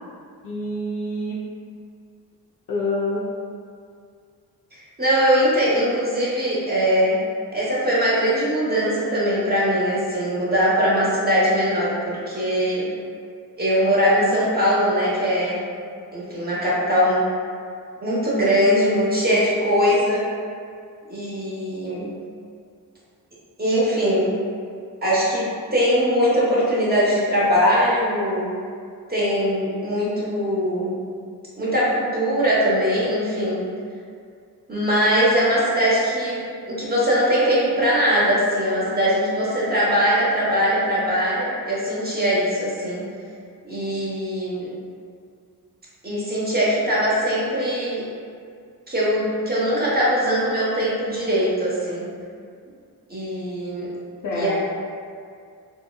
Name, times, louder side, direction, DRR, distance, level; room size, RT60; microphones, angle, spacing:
voice 1, 0.4-1.4 2.7-3.3 54.2-54.6, left 1 dB, 50° left, -4 dB, 0.5 m, -26 dB
voice 2, 5.0-7.2 7.5-12.9 13.6-15.6 16.1-17.2 18.0-20.2 21.1-22.1 23.6-24.3 25.0-28.5 29.1-30.9 31.6-33.6 34.7-43.0 43.6-44.7 46.0-48.0 48.9-52.1 53.1-53.9 54.3-54.6, equal, 25° right, -8 dB, 0.9 m, -21 dB
2.8 x 2.0 x 2.2 m, 2.2 s
cardioid pair, 55°, 41 cm